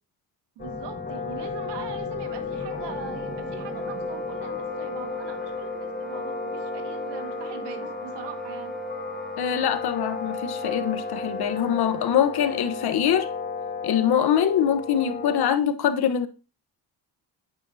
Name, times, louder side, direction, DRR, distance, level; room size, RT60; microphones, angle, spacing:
sound 1, 0.6-15.5, left 4 dB, 20° left, 5.1 m, -34 dB
voice 1, 0.6-8.8, right 8 dB, 75° right, 1.8 m, -42 dB
Wind instrument woodwind instrument, 2.2-12.1, right 2 dB, ahead, 0.9 m, -39 dB
voice 2, 9.4-13.3 13.8-16.3, left 9 dB, 65° left, 1.2 m, -23 dB
9.5 x 9.1 x 2.7 m
cardioid pair, 80°, 42 cm